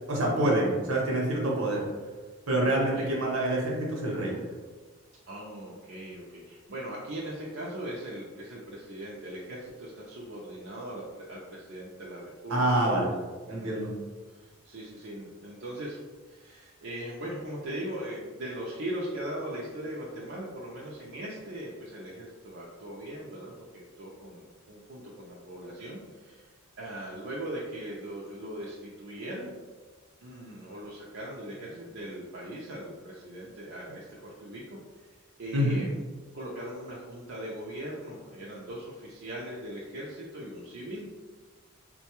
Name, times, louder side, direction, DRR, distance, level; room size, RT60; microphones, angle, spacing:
voice 1, 0.1-1.9 2.5-4.4 12.5-13.1 13.5-13.9 35.5-35.8, right 1 dB, 80° right, -2 dB, 0.9 m, -26 dB
voice 2, 2.8-3.1 5.3-13.2 13.5-13.8 14.3-26.5 26.8-29.5 30.2-34.8 35.4-35.9 36.3-41.1, right 1 dB, 60° right, -5 dB, 0.5 m, -40 dB
3.8 x 2.2 x 2.9 m, 1.4 s
head